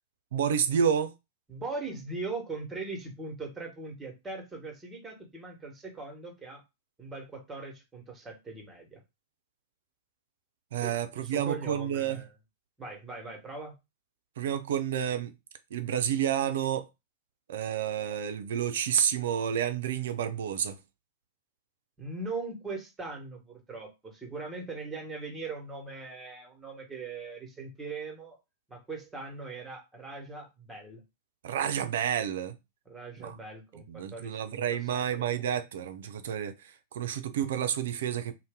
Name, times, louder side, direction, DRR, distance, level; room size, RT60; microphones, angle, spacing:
voice 1, 0.3-1.1 10.7-12.2 14.4-15.3 15.7-16.9 17.5-20.8 31.4-32.6 33.2-33.4 33.9-38.3, right 9 dB, 60° right, 0.4 m, -30 dB
voice 2, 1.5-6.6 7.0-9.0 10.8-12.3 12.8-13.8 22.0-28.4 28.7-31.0 32.9-34.6 34.9-35.5, right 3 dB, 10° right, 1.1 m, -40 dB
2.7 x 2.1 x 3.4 m
figure-of-eight pair, 95°, 0 cm